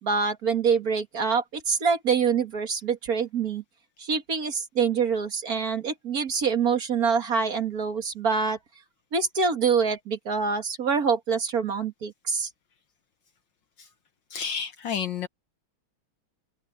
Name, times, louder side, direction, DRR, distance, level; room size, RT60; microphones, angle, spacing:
voice 1, 0.0-3.6 4.0-8.6 9.1-12.5, right 5 dB, 45° right, 2.1 m, -25 dB
voice 2, 14.3-15.3, left 7 dB, 65° left, 1.5 m, -30 dB
open air
omnidirectional pair, 2.3 m